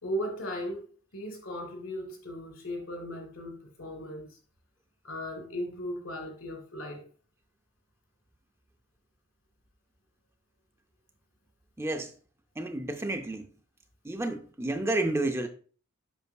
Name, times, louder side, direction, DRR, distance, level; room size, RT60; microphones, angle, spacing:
voice 1, 0.0-4.4 5.0-7.0, equal, 75° left, 2.5 m, -37 dB
voice 2, 11.8-12.1 12.6-13.5 14.0-15.5, right 2 dB, 10° right, 0.5 m, -30 dB
8.0 x 5.5 x 2.3 m
head